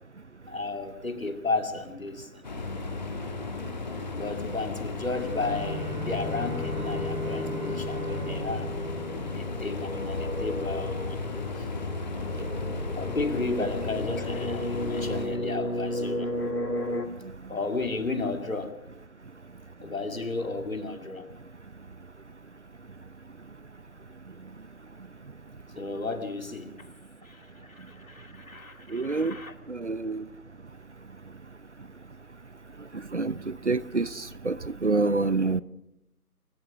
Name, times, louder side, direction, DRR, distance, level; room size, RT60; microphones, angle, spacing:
voice 1, 0.5-2.3 4.1-8.7 9.2-11.2 12.9-16.3 17.5-18.8 19.8-21.3 25.7-26.8 27.2-29.5, left 3 dB, 60° left, 7 dB, 2.7 m, -33 dB
sound 1, 2.4-15.3, left 3 dB, 30° left, 2.0 m, -35 dB
Bowed string instrument, 5.1-10.4, right 3 dB, 75° right, 1.4 m, -41 dB
sound 2, 5.5-17.1, left 1 dB, 90° left, 2.3 m, -34 dB
voice 2, 28.9-29.4 29.7-30.2 33.1-35.6, right 3 dB, 50° right, 19 dB, 0.7 m, -27 dB
28.0 x 15.0 x 6.3 m, 0.86 s
figure-of-eight pair, 155°, 45 cm